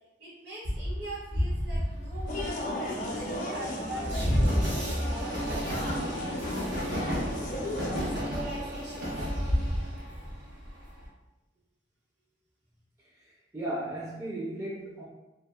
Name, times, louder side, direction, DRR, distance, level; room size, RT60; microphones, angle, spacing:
voice 1, 0.2-6.1 8.0-9.2, right 2 dB, 65° right, -6 dB, 1.1 m, -43 dB
Train, 0.6-11.1, equal, 85° right, 0.7 m, -31 dB
sound 1, 2.3-8.0, left 1 dB, 45° left, 0.5 m, -35 dB
voice 2, 13.1-15.0, right 1 dB, 15° right, -6 dB, 0.4 m, -36 dB
2.7 x 2.4 x 2.2 m, 1.0 s
head